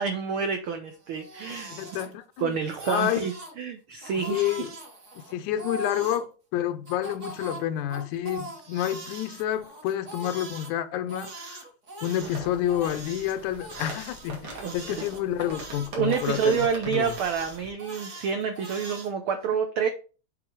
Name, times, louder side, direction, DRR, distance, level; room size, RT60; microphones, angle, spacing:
voice 1, 0.0-1.7 2.4-4.5 14.6-14.9 15.9-19.9, right 7 dB, 90° right, 1.2 m, -28 dB
Crying sobbing, 1.0-2.4 2.7-3.5 4.0-6.2 6.8-10.7 11.1-19.1, right 2 dB, 40° right, 1.1 m, -41 dB
voice 2, 1.5-2.6 2.9-3.3 4.3-4.7 5.2-11.6 12.0-17.1, left 11 dB, 90° left, 2.1 m, -29 dB
sound 1, 12.2-17.7, right 2 dB, 65° right, 3.1 m, -43 dB
7.7 x 4.0 x 4.7 m
omnidirectional pair, 3.3 m